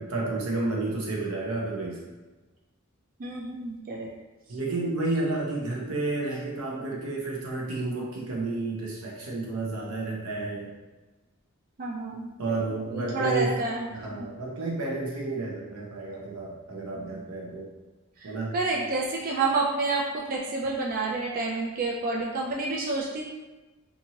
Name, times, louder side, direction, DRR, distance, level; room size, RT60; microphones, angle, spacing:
voice 1, 0.0-2.0 4.5-10.7 12.4-13.5 13.9-17.7 18.2-18.5, right 3 dB, 90° right, -3 dB, 0.8 m, -31 dB
voice 2, 3.2-4.1 11.8-14.3 17.0-17.1 18.2-23.2, right 3 dB, 40° right, -3 dB, 0.3 m, -29 dB
2.8 x 2.6 x 2.7 m, 1.2 s
head